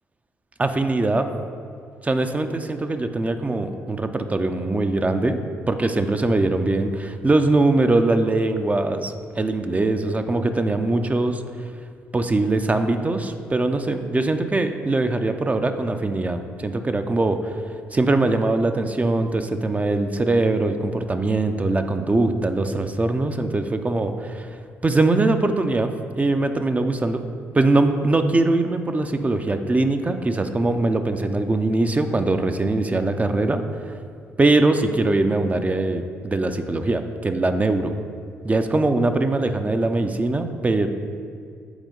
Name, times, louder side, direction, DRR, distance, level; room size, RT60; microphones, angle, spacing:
voice 1, 0.6-1.3 2.0-5.4 5.7-11.4 12.1-17.5 17.9-24.5 24.8-27.2 27.5-33.6 34.4-37.9 38.4-40.9, right 2 dB, 25° right, 7 dB, 0.5 m, -22 dB
8.0 x 4.2 x 3.8 m, 2.3 s
hypercardioid pair, 50°, 6 cm